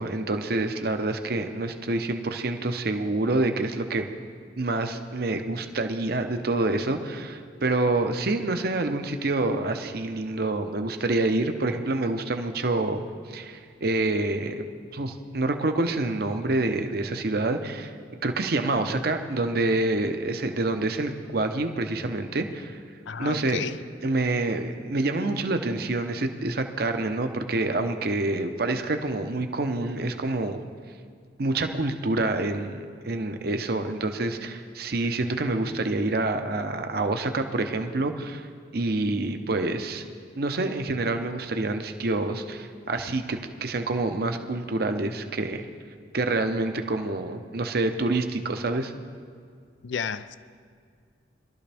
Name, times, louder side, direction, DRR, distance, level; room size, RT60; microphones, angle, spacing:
voice 1, 0.0-4.1 4.6-14.6 14.9-17.9 18.2-22.8 23.2-23.6 24.0-30.6 31.4-38.5 38.7-40.0 40.4-45.7 46.1-48.9, right 2 dB, 55° right, 7 dB, 0.8 m, -27 dB
voice 2, 23.1-23.8 49.8-50.4, left 6 dB, 80° left, 13 dB, 0.5 m, -32 dB
21.0 x 12.5 x 3.5 m, 2.2 s
head